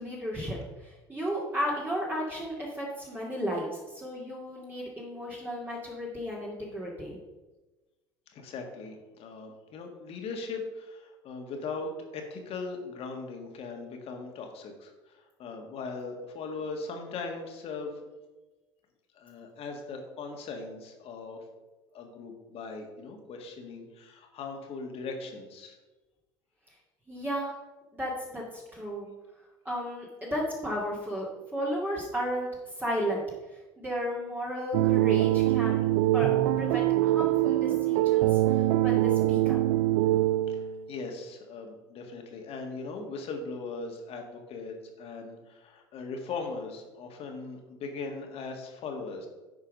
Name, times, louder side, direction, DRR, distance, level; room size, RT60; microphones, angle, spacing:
voice 1, 0.0-7.2 27.1-27.5 27.9-29.1 29.6-32.5 32.8-33.2 33.5-35.9 36.1-36.3 36.6-39.6, equal, 15° right, -5 dB, 2.2 m, -34 dB
voice 2, 8.3-18.0 19.1-21.4 21.9-25.8 40.5-49.3, left 4 dB, 55° left, 3 dB, 1.9 m, -39 dB
sound 1, 34.7-40.9, right 15 dB, 75° right, 0.4 m, -24 dB
9.2 x 4.7 x 5.3 m, 1.1 s
hypercardioid pair, 75°, 12 cm